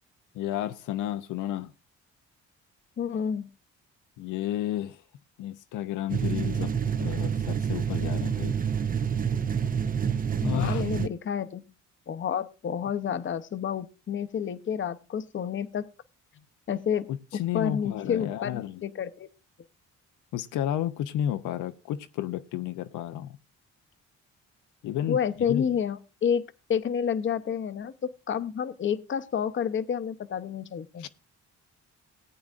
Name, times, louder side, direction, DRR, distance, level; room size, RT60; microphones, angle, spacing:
voice 1, 0.3-1.7 4.2-5.0 5.4-6.7 7.0-8.6 10.4-10.9 17.1-18.8 20.3-23.4 24.8-25.2 25.5-25.7 31.0-31.1, left 12 dB, 85° left, 0.7 m, -32 dB
voice 2, 3.0-3.5 10.4-11.6 12.1-15.9 16.7-17.1 17.5-19.3 25.1-26.4 26.7-27.9 28.3-31.1, left 8 dB, 40° left, 0.7 m, -29 dB
sound 1, 6.1-11.1, right 7 dB, 30° right, 0.6 m, -28 dB
18.0 x 8.6 x 2.5 m
cardioid pair, 90°, 30 cm